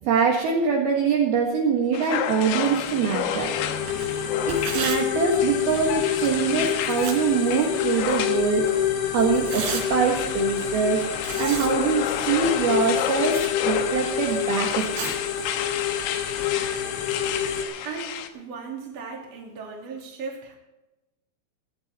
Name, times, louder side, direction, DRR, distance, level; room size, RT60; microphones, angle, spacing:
voice 1, 0.0-3.5 4.5-11.0 11.4-13.4 13.6-15.1, right 6 dB, 60° right, -1 dB, 3.1 m, -24 dB
sound 1, 1.9-18.3, left 10 dB, 85° left, 3.7 m, -32 dB
sound 2, 2.3-17.7, left 9 dB, 70° left, 3.1 m, -28 dB
Tearing, 3.8-17.6, right 5 dB, 80° right, 5.6 m, -39 dB
voice 2, 17.8-20.5, right 5 dB, 40° right, -1 dB, 3.4 m, -37 dB
17.5 x 11.5 x 4.3 m, 1.0 s
omnidirectional pair, 5.7 m